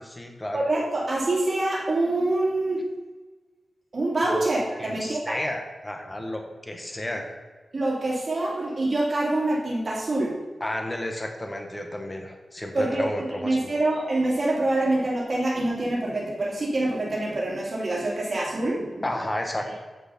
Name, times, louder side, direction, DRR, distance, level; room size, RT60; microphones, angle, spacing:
voice 1, 0.0-0.6 4.3-4.4 4.8-7.3 10.6-13.7 19.0-19.8, left 1 dB, 20° left, 3 dB, 1.3 m, -32 dB
voice 2, 0.5-2.8 3.9-5.4 7.7-10.3 12.7-13.1 13.4-19.0, right 2 dB, 40° right, -5 dB, 2.7 m, -25 dB
8.2 x 6.6 x 5.7 m, 1.3 s
wide cardioid pair, 110°, 0 cm